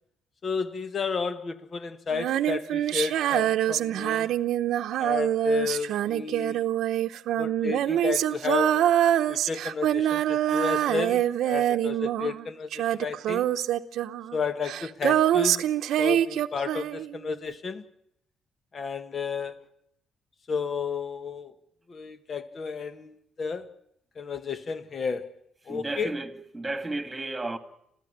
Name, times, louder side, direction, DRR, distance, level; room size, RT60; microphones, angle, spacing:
voice 1, 0.4-4.3 5.0-6.6 7.3-8.9 9.3-13.5 14.3-15.7 16.0-17.8 18.7-19.7 20.5-21.5 21.9-23.7 24.1-25.3 25.7-26.1, left 5 dB, 45° left, 1.4 m, -32 dB
Female singing, 2.1-12.5 12.7-17.2, right 11 dB, 80° right, 0.8 m, -25 dB
voice 2, 25.7-27.6, right 2 dB, 15° right, 2.1 m, -33 dB
27.5 x 15.0 x 8.7 m
cardioid pair, 90°, 0 cm